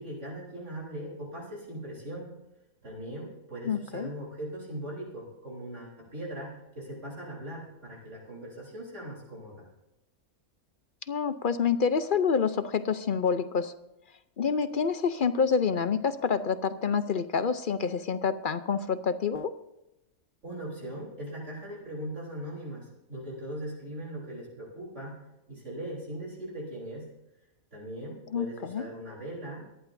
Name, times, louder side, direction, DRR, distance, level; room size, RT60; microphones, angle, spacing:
voice 1, 0.0-2.4 2.8-9.7 20.4-25.2 25.5-27.1 27.7-29.7, right 1 dB, 55° right, -3 dB, 3.9 m, -40 dB
voice 2, 3.7-4.1 11.1-13.7 14.4-19.5 28.3-28.9, left 6 dB, 55° left, 11 dB, 0.6 m, -27 dB
23.5 x 11.0 x 2.6 m, 0.92 s
omnidirectional pair, 1.5 m